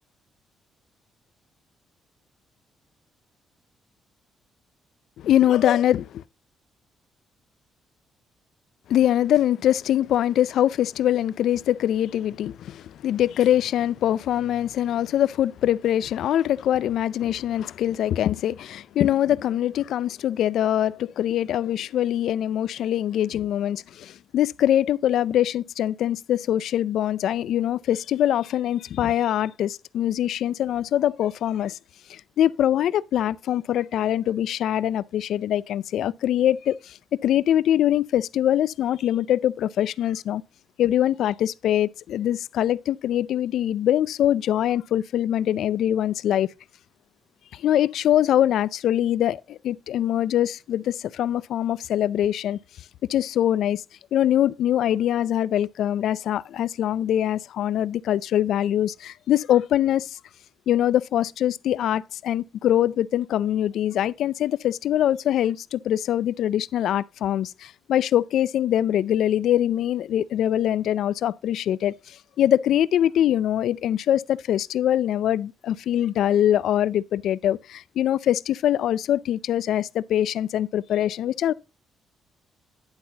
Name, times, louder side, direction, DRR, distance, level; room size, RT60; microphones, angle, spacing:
voice 1, 5.2-6.2 8.9-31.8 32.1-40.4 40.8-46.5 47.5-52.6 53.1-53.8 54.1-60.2 60.7-81.5, left 11 dB, 75° left, 0.4 m, -23 dB
10.5 x 7.9 x 2.9 m
cardioid pair, 90°, 0 cm